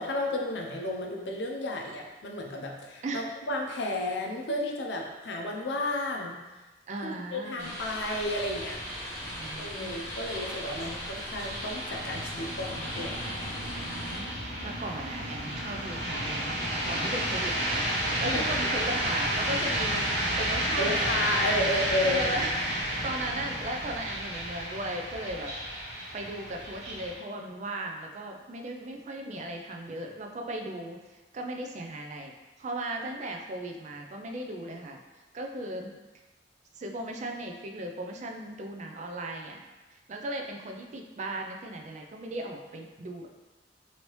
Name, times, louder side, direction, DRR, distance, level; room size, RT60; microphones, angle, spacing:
voice 1, 0.0-6.3 7.0-8.8 9.6-13.3 18.2-18.4 20.8-22.3, left 1 dB, 80° left, 1 dB, 0.5 m, -32 dB
voice 2, 6.9-7.7 9.2-10.1 10.8-11.0 13.8-20.1 20.4-21.6 22.0-25.5 26.1-32.3 32.6-35.0 35.3-36.0 36.7-39.6 39.9-43.3, right 1 dB, 40° right, 2 dB, 0.4 m, -37 dB
sound 1, 7.6-14.2, equal, 15° left, 1.0 m, -39 dB
sound 2, 8.2-27.1, right 1 dB, 80° right, 0.9 m, -32 dB
3.0 x 2.7 x 3.0 m, 1.1 s
head